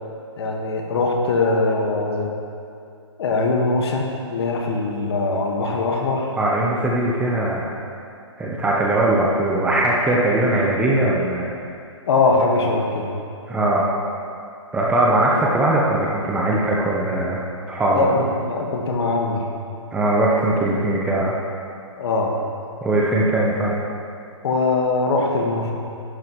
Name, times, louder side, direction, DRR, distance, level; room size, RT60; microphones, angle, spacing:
voice 1, 0.4-2.3 3.2-6.4 12.1-13.1 15.3-15.4 17.9-19.5 22.0-22.4 24.4-25.7, left 3 dB, 55° left, 1 dB, 1.6 m, -21 dB
voice 2, 6.4-7.7 8.4-11.5 13.5-13.9 14.7-18.1 19.9-21.4 22.8-23.8, right 1 dB, 5° right, -4 dB, 0.8 m, -20 dB
11.5 x 10.5 x 3.1 m, 2.5 s
hypercardioid pair, 150°, 16 cm